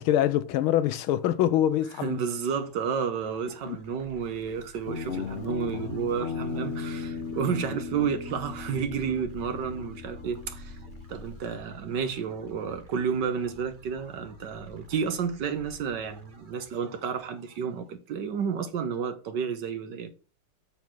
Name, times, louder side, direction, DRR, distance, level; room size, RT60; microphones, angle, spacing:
voice 1, 0.0-2.2 3.7-3.8, left 11 dB, 85° left, 1.5 m, -24 dB
voice 2, 2.0-10.8 11.1-20.2, right 6 dB, 65° right, 1.5 m, -31 dB
sound 1, 2.3-17.9, right 2 dB, 30° right, 1.1 m, -51 dB
Guitar, 4.9-11.4, left 5 dB, 55° left, 0.7 m, -37 dB
7.3 x 4.6 x 6.0 m
omnidirectional pair, 2.3 m